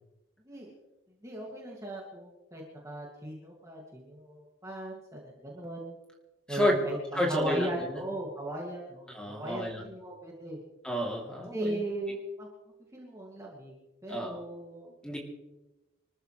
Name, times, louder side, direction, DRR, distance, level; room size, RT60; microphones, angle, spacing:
voice 1, 1.2-6.0 6.5-10.6 11.5-12.5 12.9-13.7 14.0-14.9, right 1 dB, 15° right, -3 dB, 2.4 m, -37 dB
voice 2, 7.1-8.0 9.1-9.8 10.8-11.8 14.1-14.4 15.0-15.2, left 1 dB, 5° left, -2 dB, 3.1 m, -31 dB
26.0 x 14.0 x 3.3 m, 1.0 s
head